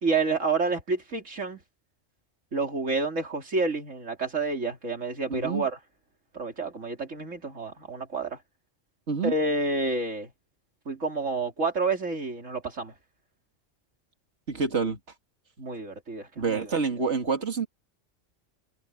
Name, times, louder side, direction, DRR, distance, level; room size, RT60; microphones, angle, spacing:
voice 1, 0.0-1.6 2.5-5.8 6.3-8.4 9.2-10.3 10.9-12.9 15.6-16.7, right 3 dB, 90° right, 3.5 m, -29 dB
voice 2, 5.3-5.7 9.1-9.3 14.5-15.0 16.4-17.7, right 5 dB, 65° right, 2.7 m, -27 dB
omnidirectional pair, 1.3 m